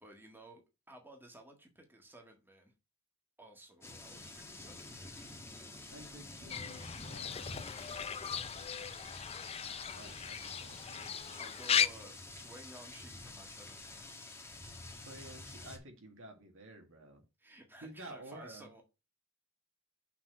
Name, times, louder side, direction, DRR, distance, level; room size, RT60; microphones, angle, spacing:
voice 1, 0.0-2.7 3.4-5.2 11.4-14.1 17.4-18.8, right 2 dB, 10° right, 1.6 m, -55 dB
sound 1, 3.8-15.8, left 2 dB, 10° left, 1.2 m, -49 dB
voice 2, 5.9-7.8 8.9-9.1 9.9-11.1 14.9-17.2 17.8-18.7, right 1 dB, 65° right, 1.8 m, -52 dB
Fowl / Bird, 6.5-11.9, left 8 dB, 30° left, 0.4 m, -37 dB
6.0 x 4.2 x 6.3 m
head